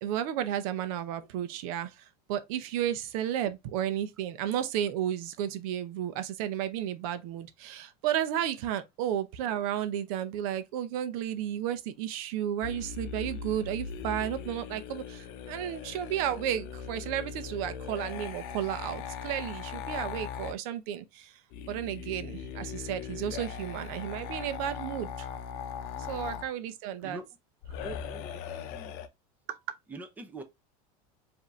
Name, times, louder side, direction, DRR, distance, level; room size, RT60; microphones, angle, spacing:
voice 1, 0.0-21.4 21.7-25.3 26.1-27.2 29.5-29.6, right 10 dB, 70° right, 0.7 m, -33 dB
sound 1, 12.6-20.5 21.5-26.5 27.6-29.1, left 7 dB, 55° left, 0.7 m, -39 dB
voice 2, 27.8-29.0 29.9-30.4, right 2 dB, 10° right, 0.6 m, -44 dB
5.0 x 2.7 x 3.1 m
supercardioid pair, 155°, 19 cm